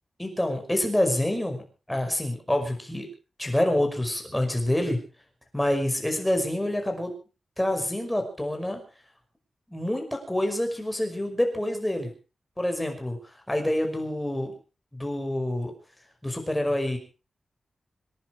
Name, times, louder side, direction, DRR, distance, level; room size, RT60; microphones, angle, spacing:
voice 1, 0.2-1.6 1.9-3.1 3.4-5.0 5.5-7.1 7.6-8.8 9.7-12.1 12.6-13.2 13.5-14.5 14.9-15.7 16.2-17.0, left 1 dB, 10° left, 4 dB, 5.5 m, -27 dB
27.0 x 10.5 x 4.6 m, 0.35 s
wide cardioid pair, 110°, 0 cm